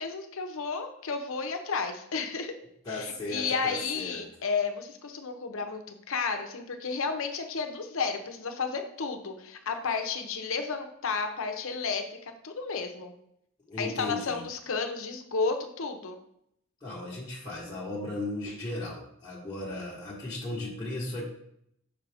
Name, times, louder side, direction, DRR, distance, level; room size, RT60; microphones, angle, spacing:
voice 1, 0.0-2.5 2.9-13.1 13.8-16.2, left 5 dB, 60° left, 6 dB, 0.7 m, -32 dB
voice 2, 2.8-4.2 13.7-14.4 16.8-21.3, left 2 dB, 20° left, -7 dB, 1.0 m, -36 dB
5.8 x 4.9 x 3.4 m, 0.73 s
head